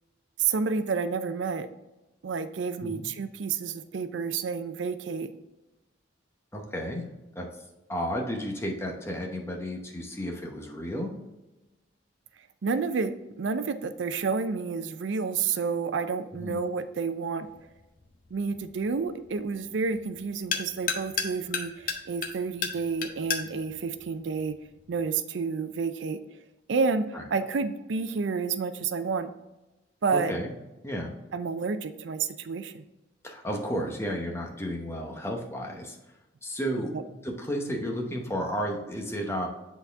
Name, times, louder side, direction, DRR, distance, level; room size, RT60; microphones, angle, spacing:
voice 1, 0.4-1.7 2.2-5.3 12.6-17.5 18.3-24.6 24.9-26.2 26.7-29.3 30.0-30.3 31.3-32.8, right 5 dB, 75° right, 11 dB, 0.5 m, -30 dB
voice 2, 6.5-7.0 7.3-7.5 7.9-11.1 16.3-16.6 27.1-27.2 30.1-30.5 30.8-31.1 33.2-36.0 36.4-39.5, equal, 15° left, 1 dB, 0.8 m, -32 dB
sound 1, 17.4-25.0, left 6 dB, 45° left, 0.7 m, -36 dB
8.0 x 4.1 x 3.5 m, 1.0 s
head